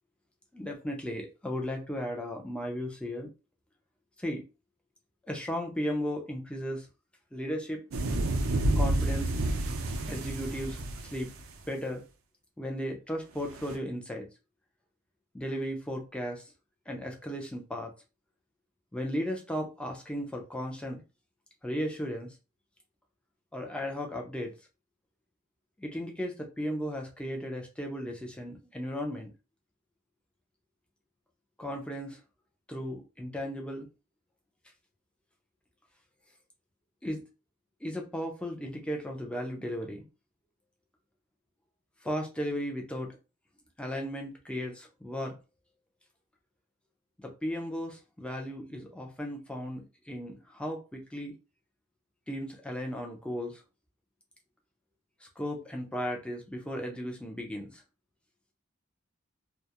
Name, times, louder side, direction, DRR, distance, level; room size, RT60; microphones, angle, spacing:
voice 1, 0.5-3.3 4.2-4.4 5.3-6.9 7.3-7.9 8.8-9.4 10.1-11.3 11.7-12.0 12.6-14.3 15.3-16.5 16.9-17.9 18.9-21.0 21.6-22.4 23.5-24.5 25.8-29.3 31.6-32.2 32.7-33.9 37.0-37.2 37.8-40.1 42.0-43.2 43.8-45.4 47.2-51.3 52.3-53.6 55.2-57.8, equal, 5° left, 0.4 m, -35 dB
sound 1, 7.9-11.6 13.5-13.8, right 1 dB, 80° right, 0.5 m, -29 dB
2.3 x 2.0 x 2.8 m
head